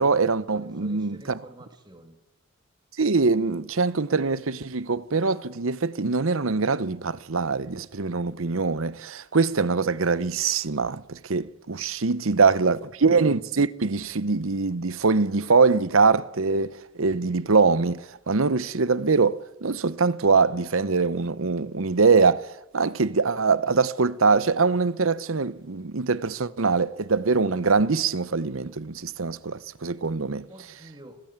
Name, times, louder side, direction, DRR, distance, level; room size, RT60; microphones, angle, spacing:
voice 1, 0.0-1.4 3.0-30.5, right 4 dB, 75° right, 0.9 m, -23 dB
voice 2, 0.5-2.2 12.2-12.3 30.5-31.2, right 1 dB, 20° right, 2.9 m, -48 dB
29.5 x 18.0 x 8.9 m
head